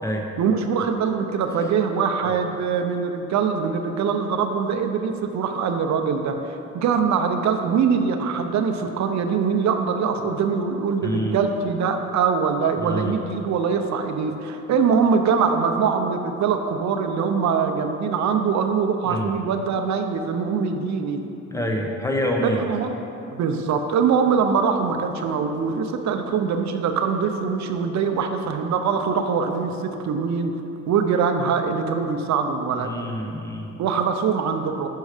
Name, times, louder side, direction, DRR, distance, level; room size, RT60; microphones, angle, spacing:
voice 1, 0.4-21.2 22.6-23.0 23.3-30.5 30.9-32.9 33.8-34.9, right 6 dB, 65° right, 6 dB, 0.6 m, -23 dB
voice 2, 11.0-11.4 12.8-13.1 19.0-19.3 21.5-22.6 32.7-33.7, equal, 10° left, 1 dB, 0.8 m, -26 dB
Run, 23.9-28.6 28.9-29.1 29.5-29.8, left 2 dB, 55° left, 1.2 m, -47 dB
6.4 x 4.6 x 4.9 m, 2.9 s
cardioid pair, 90°, 30 cm